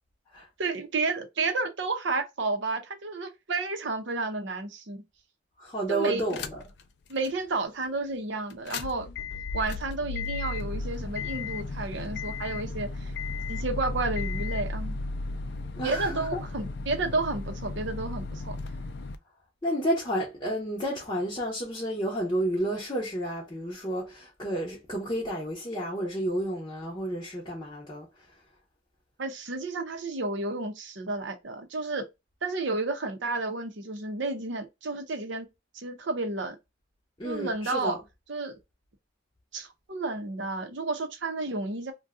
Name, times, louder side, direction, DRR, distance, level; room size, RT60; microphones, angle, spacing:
voice 1, 0.6-5.0 5.9-6.2 7.1-9.1 9.5-13.1 13.5-15.0 15.8-18.6 29.2-32.0 32.4-35.5 35.7-36.6 37.2-38.0 38.3-38.6 39.5-41.9, right 3 dB, 65° right, 0.7 m, -31 dB
voice 2, 5.6-6.6 15.8-16.4 19.6-28.1 37.2-38.0, right 1 dB, 20° left, 0.7 m, -31 dB
sound 1, 6.3-6.8 7.2-7.3 8.5-19.2, left 3 dB, 55° left, 0.4 m, -34 dB
2.6 x 2.2 x 3.5 m
head